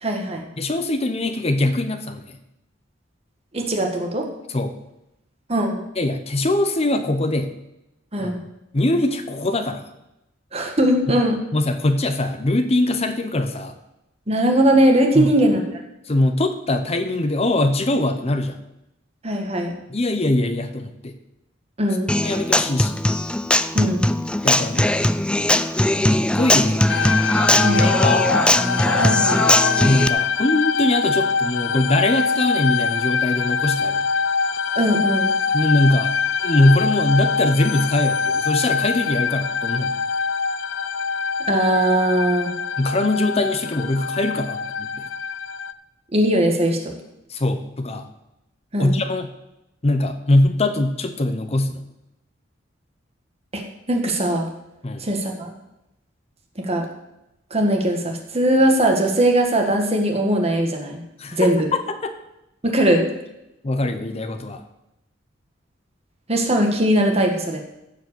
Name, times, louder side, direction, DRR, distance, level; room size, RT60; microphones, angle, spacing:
voice 1, 0.0-0.5 3.5-4.3 5.5-5.8 8.1-8.4 10.5-11.4 14.3-15.6 19.2-19.7 21.8-22.1 23.7-24.0 27.6-27.9 29.0-29.4 34.8-35.3 41.5-42.5 46.1-47.0 48.7-48.9 53.5-54.5 55.0-55.5 56.6-56.8 57.5-61.0 61.3-61.7 62.6-63.0 66.3-67.6, right 1 dB, 35° right, 2 dB, 1.8 m, -20 dB
voice 2, 0.6-2.4 4.5-4.7 6.0-7.5 8.2-8.3 8.7-9.9 11.5-13.7 15.1-15.3 16.0-18.6 19.9-21.2 22.2-23.0 24.4-24.9 26.1-26.9 27.5-28.3 29.8-34.1 35.5-36.1 36.4-39.9 42.8-44.9 47.3-48.1 48.8-49.3 49.8-51.8 54.8-55.0 61.2-62.2 63.6-64.6, left 2 dB, 35° left, 8 dB, 0.7 m, -22 dB
Human voice / Acoustic guitar, 22.1-30.1, left 1 dB, 5° left, 0.3 m, -19 dB
sound 1, 26.9-45.7, left 5 dB, 85° left, 0.5 m, -24 dB
15.0 x 5.1 x 6.9 m, 0.88 s
head